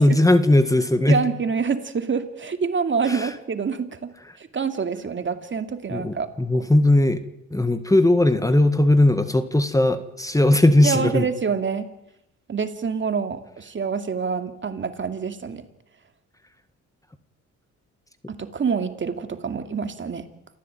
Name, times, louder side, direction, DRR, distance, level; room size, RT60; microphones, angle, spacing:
voice 1, 0.0-1.2 3.1-3.3 5.9-7.2 7.5-11.2, left 1 dB, 10° left, 10 dB, 1.7 m, -18 dB
voice 2, 1.1-4.1 4.4-6.3 10.8-11.9 12.5-15.6 18.3-20.3, right 5 dB, 40° right, 8 dB, 2.5 m, -26 dB
28.0 x 15.0 x 9.1 m, 0.83 s
cardioid pair, 90°, 30 cm